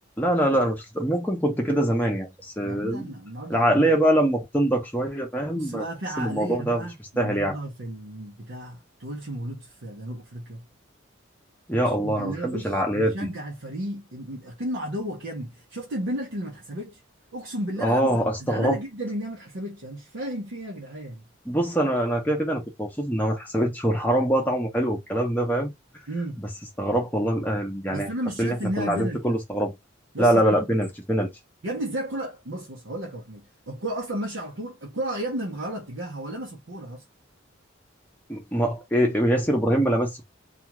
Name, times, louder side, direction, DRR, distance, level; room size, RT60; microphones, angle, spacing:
voice 1, 0.2-2.3 2.6-3.1 3.5-5.8 6.2-6.8 7.2-7.6 11.7-13.1 17.8-18.8 21.5-25.7 26.8-28.1 28.4-29.7 30.2-31.3 38.3-40.2, right 1 dB, 10° left, 0.7 m, -23 dB
voice 2, 2.6-3.9 5.5-10.7 11.7-17.0 17.3-21.2 26.1-26.4 27.9-29.4 30.1-30.8 31.6-37.0, right 1 dB, 70° right, 0.8 m, -33 dB
2.4 x 2.4 x 2.9 m
head